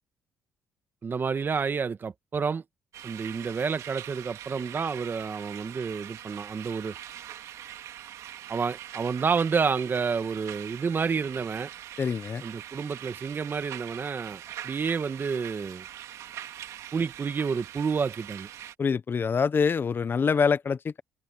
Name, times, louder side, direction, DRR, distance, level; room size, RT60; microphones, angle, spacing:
voice 1, 1.0-2.6 3.0-7.0 8.5-11.7 12.4-15.9 16.9-18.5, right 5 dB, 40° right, 1.8 m, -29 dB
sound 1, 2.9-18.7, right 11 dB, 75° right, 2.5 m, -43 dB
voice 2, 12.0-12.4 18.8-21.0, left 5 dB, 40° left, 0.9 m, -25 dB
supercardioid pair, 70°, 5 cm